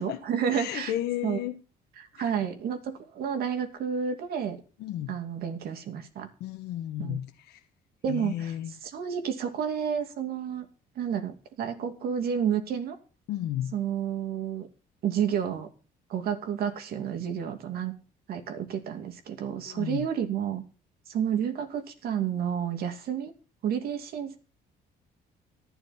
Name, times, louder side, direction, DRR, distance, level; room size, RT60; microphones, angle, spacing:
voice 1, 0.0-0.9 1.2-1.4 2.0-4.6 5.1-6.3 7.0-7.2 8.0-8.5 8.8-10.7 11.0-13.0 13.7-14.7 15.0-15.7 16.1-17.9 18.3-20.6 21.1-23.3 23.6-24.4, right 8 dB, 65° right, 6 dB, 2.5 m, -30 dB
voice 2, 0.5-1.5 2.2-2.3 4.8-5.2 6.4-7.6 8.1-8.7 13.3-13.7 19.6-20.1, left 12 dB, 80° left, 3 dB, 1.4 m, -33 dB
15.5 x 11.5 x 4.4 m, 0.38 s
cardioid pair, 110°, 17 cm